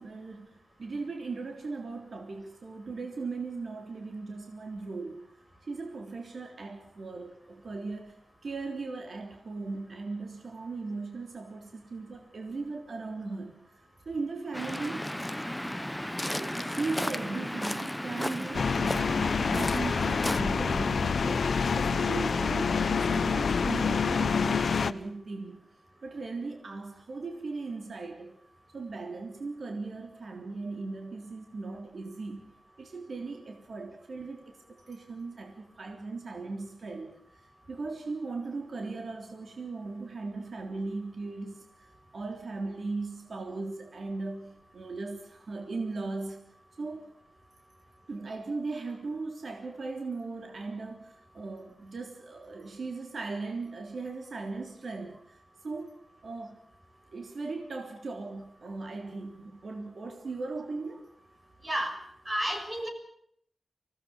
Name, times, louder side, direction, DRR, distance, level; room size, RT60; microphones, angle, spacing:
voice 1, 0.0-5.3 5.7-8.2 8.4-13.6 14.1-15.2 16.3-25.6 26.0-28.4 28.7-32.5 32.8-37.1 37.7-41.9 42.1-46.5 46.8-47.2 48.1-55.4 55.6-56.6 57.1-61.1, right 3 dB, 60° right, 4 dB, 3.5 m, -38 dB
Waves surf, 14.5-20.4, left 1 dB, 5° left, 0.9 m, -34 dB
sound 1, 18.5-24.9, left 5 dB, 70° left, 1.0 m, -27 dB
voice 2, 61.6-62.0 62.3-62.9, equal, 25° right, 5 dB, 6.0 m, -31 dB
25.5 x 18.0 x 7.2 m, 0.67 s
wide cardioid pair, 115°, 0 cm